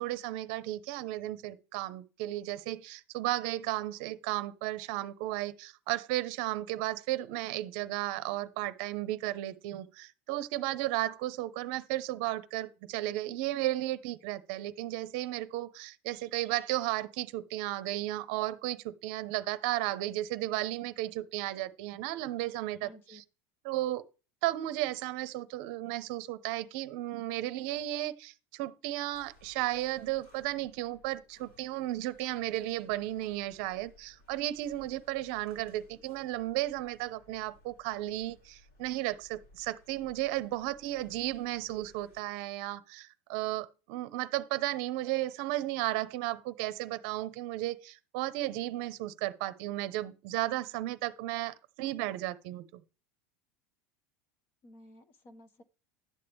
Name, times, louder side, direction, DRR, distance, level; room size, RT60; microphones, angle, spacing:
voice 1, 0.0-23.2 23.6-24.0 24.4-52.6, right 16 dB, 50° right, 0.7 m, -34 dB
voice 2, 22.8-23.2 54.6-55.6, left 1 dB, 30° left, 1.0 m, -54 dB
sound 1, 29.1-42.2, left 1 dB, 60° left, 5.0 m, -61 dB
11.5 x 8.4 x 3.5 m
supercardioid pair, 170°, 7 cm